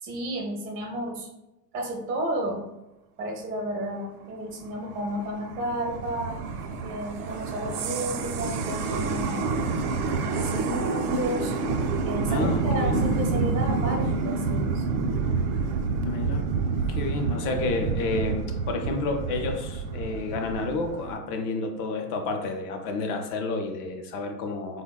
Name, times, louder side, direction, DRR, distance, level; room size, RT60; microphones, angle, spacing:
voice 1, 0.0-1.3 1.7-2.7 3.2-6.4 6.8-9.5 10.3-11.6 12.0-14.9, right 1 dB, 20° right, -1 dB, 0.4 m, -32 dB
sound 1, 4.6-21.1, right 4 dB, 70° right, 0.6 m, -28 dB
voice 2, 12.3-13.1 16.0-16.5 16.9-24.8, left 3 dB, 50° left, 5 dB, 0.5 m, -30 dB
3.5 x 2.1 x 2.2 m, 0.93 s
hypercardioid pair, 115°, 48 cm